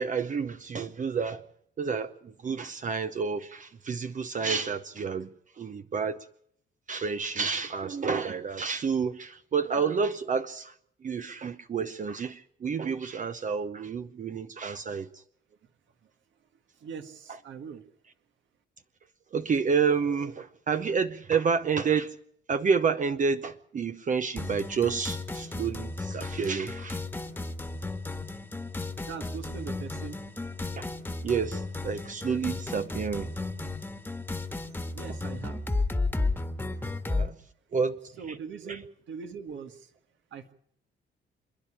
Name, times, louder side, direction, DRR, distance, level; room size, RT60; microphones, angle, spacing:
voice 1, 0.0-1.4 1.8-6.3 6.9-10.7 11.0-15.2 19.3-22.2 22.5-27.0 31.2-33.3 37.1-37.4 37.7-38.0 38.6-38.8, right 5 dB, 40° right, 9 dB, 0.8 m, -29 dB
voice 2, 16.8-17.8 29.1-30.2 34.9-35.6 38.2-39.8 40.3-40.5, right 6 dB, 70° right, 7 dB, 1.8 m, -41 dB
sound 1, 24.4-37.3, left 2 dB, 10° left, 1.5 m, -34 dB
27.0 x 10.5 x 10.0 m, 0.70 s
cardioid pair, 90°, 20 cm